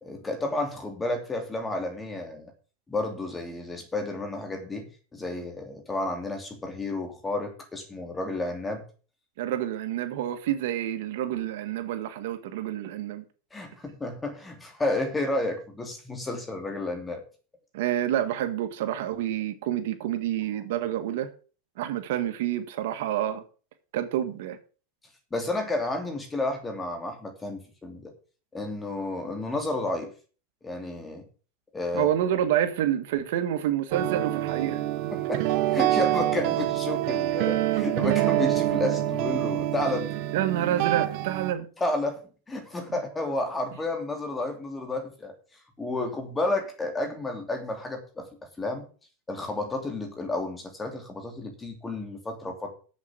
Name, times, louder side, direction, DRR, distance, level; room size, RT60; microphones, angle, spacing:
voice 1, 0.0-2.5 2.9-8.8 13.5-17.2 20.5-20.6 25.3-28.1 28.5-30.1 30.6-31.2 31.7-32.1 35.1-40.1 41.8-42.2 42.5-45.3 45.8-48.3 48.6-48.9 49.3-52.7, left 2 dB, 15° left, 2.9 m, -31 dB
voice 2, 9.4-13.2 17.7-21.3 21.8-23.4 23.9-24.6 31.9-35.1 40.3-41.7, right 11 dB, 70° right, 1.8 m, -28 dB
sound 1, 33.9-41.5, right 14 dB, 55° right, 1.1 m, -26 dB
7.7 x 7.2 x 8.3 m
supercardioid pair, 135°, 0 cm